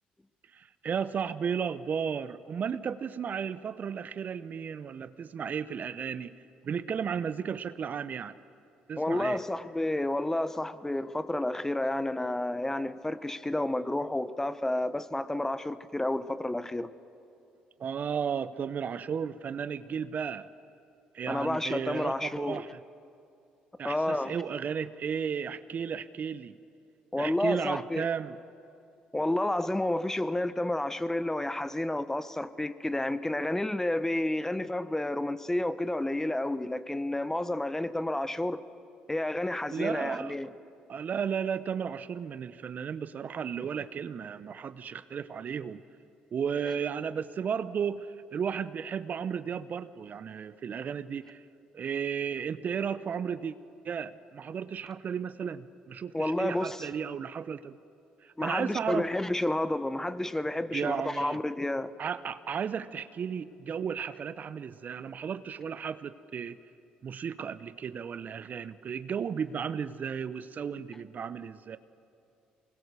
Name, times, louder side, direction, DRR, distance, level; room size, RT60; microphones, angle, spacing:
voice 1, 0.5-6.4 6.6-8.4 8.9-9.4 17.8-20.5 21.1-22.8 23.8-26.6 27.2-28.4 39.7-40.4 40.9-45.8 46.3-51.4 51.7-53.5 53.8-57.8 58.2-59.1 60.7-61.4 62.0-66.6 67.0-71.8, right 7 dB, 50° right, 15 dB, 0.7 m, -34 dB
voice 2, 9.0-16.9 21.3-22.7 23.8-24.4 27.1-28.1 29.1-38.6 39.1-40.5 56.1-56.8 58.4-61.9, left 1 dB, 10° left, 14 dB, 1.0 m, -30 dB
23.5 x 20.5 x 6.9 m, 2.6 s
hypercardioid pair, 60°, 4 cm